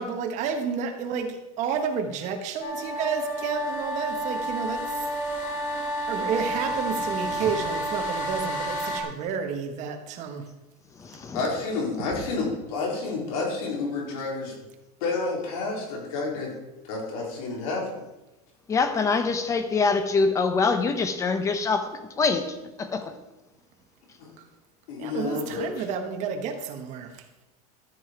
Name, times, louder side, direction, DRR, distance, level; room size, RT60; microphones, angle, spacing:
voice 1, 0.0-5.0 6.1-10.4 25.0-27.1, right 6 dB, 40° right, 5 dB, 1.4 m, -30 dB
sound 1, 2.6-9.0, right 1 dB, 40° left, 1.9 m, -30 dB
voice 2, 7.1-7.6 11.0-11.6 18.7-23.1, left 4 dB, 15° left, 8 dB, 0.9 m, -25 dB
voice 3, 11.3-14.5 15.0-16.5 16.8-18.0 24.2-24.3 24.9-25.8, left 3 dB, 70° left, -2 dB, 4.2 m, -30 dB
13.5 x 7.1 x 4.6 m, 1.0 s
supercardioid pair, 160°, 19 cm